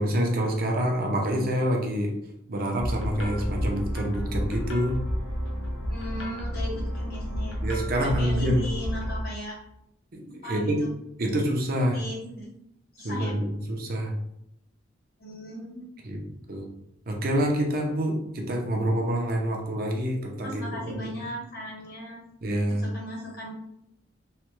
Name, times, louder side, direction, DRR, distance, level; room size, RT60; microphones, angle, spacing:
voice 1, 0.0-2.1 2.5-5.0 7.6-8.6 10.1-10.8 11.2-12.0 13.0-14.1 16.0-16.2 16.5-16.7 17.1-21.0 22.4-22.8, equal, 50° right, 1 dB, 0.6 m, -27 dB
sound 1, 2.8-9.2, equal, 85° left, 0.6 m, -31 dB
voice 2, 5.9-7.6 8.0-9.6 10.4-10.7 11.9-12.5 12.9-13.3 15.2-15.9 20.4-22.2 22.7-23.5, equal, 50° left, -3 dB, 1.1 m, -37 dB
3.2 x 2.2 x 3.0 m, 0.79 s
head